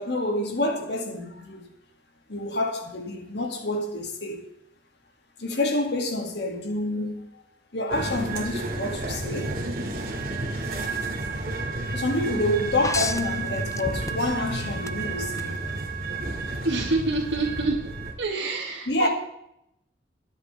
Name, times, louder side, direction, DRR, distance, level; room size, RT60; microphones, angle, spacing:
voice 1, 0.0-1.6 2.3-4.4 5.4-7.4 7.7-9.5 11.9-15.5 18.9-19.1, left 1 dB, 65° left, 2.4 m, -28 dB
sound 1, 7.9-18.1, right 3 dB, 50° right, 2.3 m, -31 dB
sound 2, 12.8-14.4 14.9-15.5 17.1-17.2, left 4 dB, 15° left, 0.5 m, -32 dB
voice 2, 16.6-17.8 18.2-19.1, right 3 dB, 85° right, 1.8 m, -26 dB
22.0 x 8.1 x 3.5 m
head